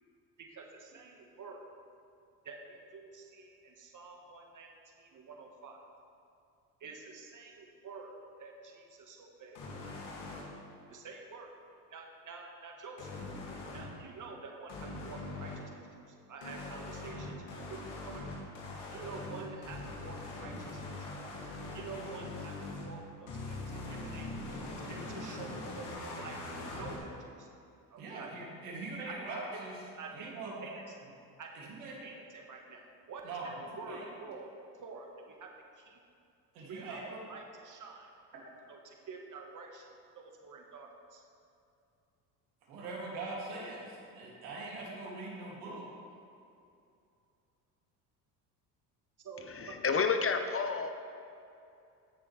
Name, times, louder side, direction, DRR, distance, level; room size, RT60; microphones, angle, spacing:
voice 1, 0.4-1.6 2.4-5.8 6.8-9.6 10.9-11.5 11.9-13.1 13.7-15.6 16.1-18.2 18.9-21.1 21.7-24.3 24.9-27.5 27.9-28.3 29.0-29.2 29.5-29.6 30.0-30.8 31.4-31.7 32.0-35.5 35.8-36.0 36.7-38.1 38.7-39.9 40.1-41.2 49.2-49.8, right 4 dB, 40° right, 1 dB, 1.7 m, -48 dB
sound 1, 9.6-10.4 13.0-13.9 14.7-15.6 16.4-22.9 23.3-27.0, left 2 dB, 80° left, 2.5 m, -42 dB
voice 2, 28.0-29.8 30.1-30.6 31.5-32.0 33.2-34.0 36.5-37.2 42.7-45.8, right 3 dB, 80° right, -4 dB, 2.8 m, -42 dB
voice 3, 49.4-50.9, left 5 dB, 30° left, 7 dB, 0.7 m, -30 dB
16.0 x 6.9 x 3.4 m, 2.5 s
hypercardioid pair, 70°, 47 cm